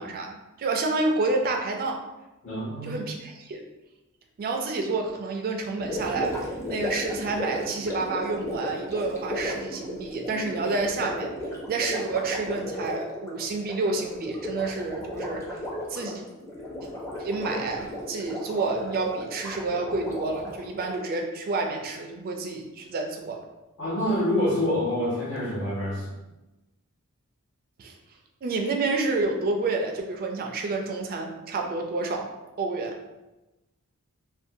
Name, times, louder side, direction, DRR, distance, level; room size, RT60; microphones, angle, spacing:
voice 1, 0.0-2.0 2.8-3.7 4.4-11.3 11.7-15.6 15.9-16.2 17.2-23.4 27.8-28.0 28.4-32.3 32.6-33.0, right 3 dB, 45° right, 2 dB, 0.3 m, -29 dB
voice 2, 2.4-3.0 23.8-26.0, left 1 dB, 80° left, -11 dB, 1.0 m, -26 dB
Gurgling, 5.8-21.1, left 1 dB, 15° left, 0.5 m, -35 dB
2.6 x 2.2 x 2.6 m, 1.0 s
head